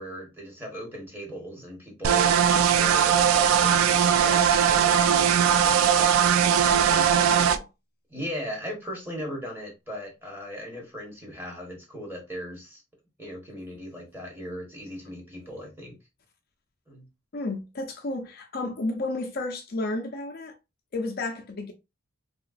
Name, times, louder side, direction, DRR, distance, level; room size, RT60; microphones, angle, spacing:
voice 1, 0.0-6.2 6.7-7.1 8.1-12.8 13.2-16.0 16.9-17.1, equal, 10° right, 1.1 m, -38 dB
sound 1, 2.0-7.6, right 8 dB, 85° right, 0.3 m, -20 dB
voice 2, 6.7-7.7 17.3-20.5 20.9-21.7, left 2 dB, 45° left, 0.5 m, -32 dB
3.0 x 2.9 x 2.5 m
head